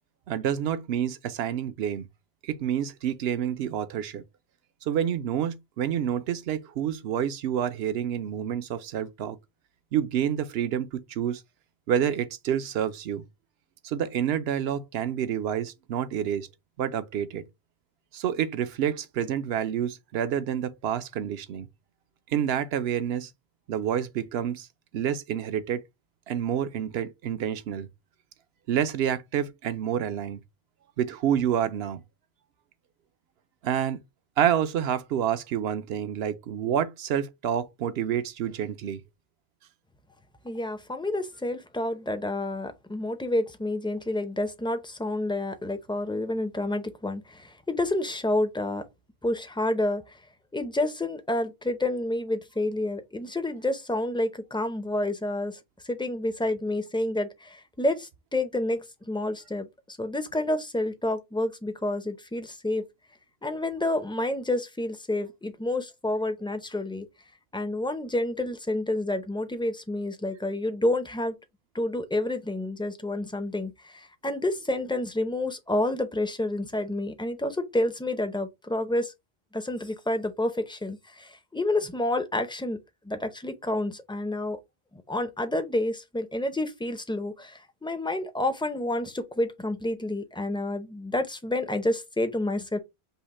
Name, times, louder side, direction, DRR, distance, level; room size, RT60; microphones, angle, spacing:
voice 1, 0.3-2.1 2.4-4.2 4.8-9.4 9.9-11.4 11.9-13.2 13.8-16.5 16.8-17.4 18.1-21.7 22.3-23.3 23.7-24.7 24.9-25.8 26.3-27.9 28.7-30.4 31.0-32.0 33.6-34.0 34.4-39.0, right 9 dB, 75° right, 0.8 m, -28 dB
voice 2, 40.4-48.8 49.2-50.2 50.5-55.6 55.8-62.8 63.4-67.1 67.5-71.4 71.7-79.1 79.5-82.8 83.0-84.6 84.9-92.8, left 1 dB, 5° left, 0.4 m, -29 dB
5.5 x 2.0 x 4.1 m
omnidirectional pair, 1.1 m